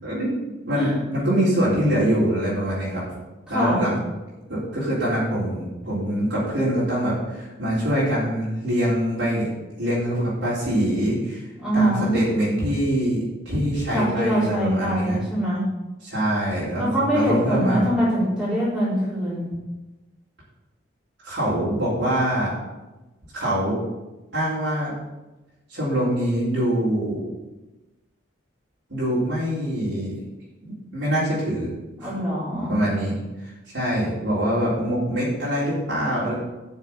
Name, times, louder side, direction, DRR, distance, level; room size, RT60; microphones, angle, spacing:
voice 1, 0.0-3.0 3.5-4.0 4.5-9.5 9.8-11.4 11.7-15.2 16.0-17.9 21.2-22.5 23.3-23.8 24.3-24.9 25.7-27.2 28.9-30.1 30.6-31.7 32.0-32.1 32.7-36.3, equal, 70° right, -9 dB, 3.6 m, -24 dB
voice 2, 3.5-3.9 11.6-12.2 13.9-15.6 16.8-19.5 32.0-32.8, equal, 5° right, -11 dB, 4.0 m, -23 dB
8.3 x 6.5 x 7.0 m, 1.1 s
head